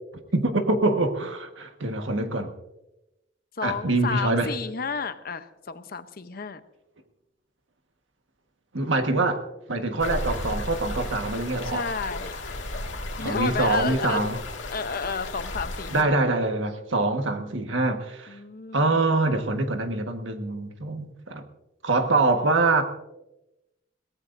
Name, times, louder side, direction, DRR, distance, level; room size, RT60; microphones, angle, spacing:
voice 1, 0.3-2.5 3.6-4.5 8.7-9.4 9.7-11.9 13.2-14.4 15.9-18.3 18.7-21.4 21.8-22.8, right 2 dB, 80° right, 1.5 m, -24 dB
voice 2, 3.6-6.6 11.6-12.3 13.2-14.3 14.7-16.2 18.3-19.1, left 5 dB, 50° left, 0.8 m, -31 dB
sound 1, 10.0-16.0, left 2 dB, 75° left, 2.0 m, -34 dB
22.0 x 18.0 x 2.7 m
head